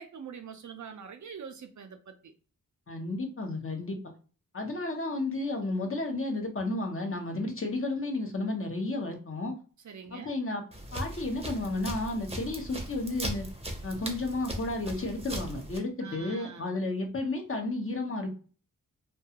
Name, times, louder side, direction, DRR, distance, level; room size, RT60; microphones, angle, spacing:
voice 1, 0.0-2.3 9.8-10.4 16.0-16.7, right 6 dB, 55° right, 0.5 m, -44 dB
voice 2, 2.9-4.0 4.5-9.5 10.1-10.6 10.9-13.5 13.8-18.3, left 2 dB, 35° left, 0.8 m, -32 dB
sound 1, 10.7-15.8, right 1 dB, 15° right, 0.7 m, -38 dB
2.3 x 2.2 x 2.8 m
cardioid pair, 55°, 36 cm